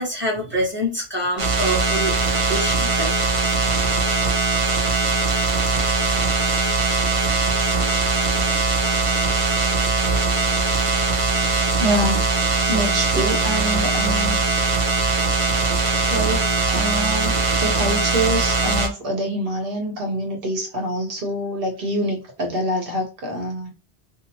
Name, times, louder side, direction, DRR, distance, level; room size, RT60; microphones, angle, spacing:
voice 1, 0.0-2.1 2.5-3.1, equal, 10° right, -3 dB, 1.1 m, -25 dB
sound 1, 1.4-18.9, right 3 dB, 40° right, 0.5 m, -21 dB
voice 2, 11.8-12.2 12.7-14.4 16.0-17.3 17.6-23.7, equal, 60° right, 2 dB, 1.1 m, -25 dB
2.8 x 2.0 x 2.8 m, 0.32 s
omnidirectional pair, 1.1 m